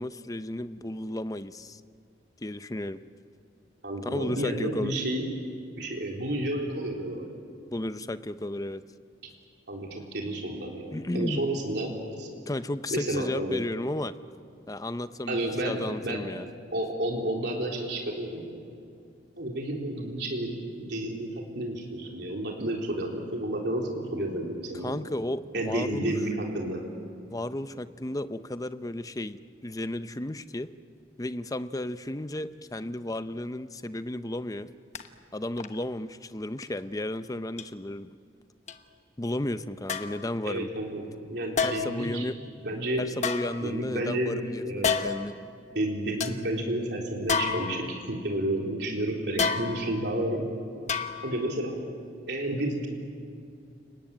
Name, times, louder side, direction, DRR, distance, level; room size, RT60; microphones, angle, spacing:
voice 1, 0.0-1.8 2.4-3.0 4.0-4.9 7.7-8.8 10.9-11.4 12.5-14.1 14.7-15.4 15.6-16.5 24.8-26.1 27.3-30.7 31.2-34.7 35.3-38.1 39.2-40.7 41.6-42.4 43.0-45.5, left 1 dB, 20° left, 12 dB, 0.7 m, -33 dB
voice 2, 3.8-5.3 5.8-7.2 9.2-9.3 9.7-12.3 12.9-13.6 15.3-15.8 16.0-16.2 16.7-18.6 19.4-24.9 25.5-26.8 40.4-42.3 42.6-43.0 43.6-44.3 44.6-44.9 45.7-50.5 51.2-51.8 52.3-52.9, right 1 dB, 65° right, 0 dB, 3.8 m, -31 dB
sound 1, 34.9-35.1 35.6-35.8 36.6-36.7 37.6-37.7 38.7-38.8 39.9-40.3 41.6-42.0 43.2-44.0 44.8-45.3 45.8-45.9 46.2-46.4 47.3-48.1 49.4-50.0 50.9-51.5 51.8-51.9, left 5 dB, 40° left, 1.2 m, -30 dB
30.0 x 19.5 x 8.9 m, 2.4 s
head